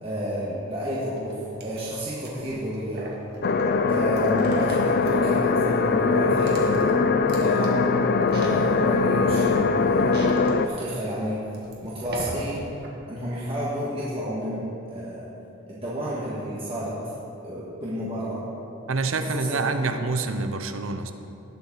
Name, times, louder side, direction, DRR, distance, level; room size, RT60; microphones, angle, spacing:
voice 1, 0.0-3.0 3.9-6.9 7.4-7.9 8.3-10.3 10.6-11.4 11.8-12.7 13.1-14.6 14.9-15.3 15.7-16.9 17.4-18.4 19.2-19.9, equal, 25° right, -8 dB, 1.6 m, -31 dB
sound 1, 1.2-12.9, right 1 dB, 50° right, 1.8 m, -41 dB
sound 2, 3.4-10.7, left 4 dB, 50° left, 0.5 m, -21 dB
voice 2, 18.9-21.1, right 3 dB, 75° right, 8 dB, 0.8 m, -27 dB
19.0 x 7.0 x 4.1 m, 2.8 s
head